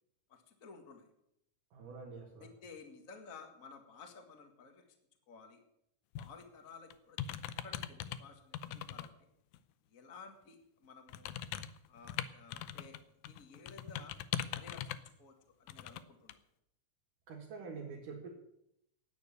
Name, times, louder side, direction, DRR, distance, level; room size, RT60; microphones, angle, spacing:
voice 1, 0.3-1.1 2.4-4.8 5.3-5.6 6.2-7.2 7.6-9.1 9.9-11.4 11.9-13.0 13.3-14.1 14.5-15.3 15.6-16.4, left 4 dB, 30° left, 6 dB, 1.8 m, -54 dB
voice 2, 1.7-2.5 17.3-18.3, right 4 dB, 90° right, -3 dB, 3.4 m, -46 dB
sound 1, 6.2-6.4 6.9-8.2 8.5-9.1 9.5-9.6 11.1-13.0 13.2-15.1 15.7-16.0 16.3-16.4, left 11 dB, 75° left, 2.0 m, -41 dB
11.5 x 9.6 x 9.5 m, 0.78 s
omnidirectional pair, 3.6 m